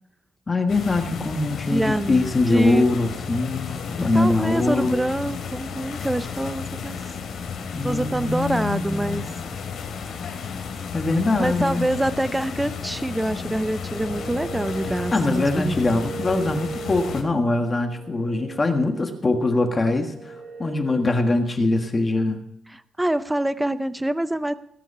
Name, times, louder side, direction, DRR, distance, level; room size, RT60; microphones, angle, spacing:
voice 1, 0.5-5.0 7.7-9.3 10.9-11.9 15.1-20.3 20.6-22.4, left 2 dB, 25° left, 5 dB, 1.6 m, -23 dB
sound 1, 0.7-17.2, left 6 dB, 65° left, 3.4 m, -33 dB
voice 2, 1.7-2.9 4.1-7.0 7.8-9.3 11.4-16.2 22.7-24.5, right 1 dB, 5° right, 12 dB, 0.5 m, -25 dB
sound 2, 13.6-21.5, right 4 dB, 70° right, 2.2 m, -39 dB
19.0 x 9.6 x 5.5 m, 0.74 s
cardioid pair, 140°, 0 cm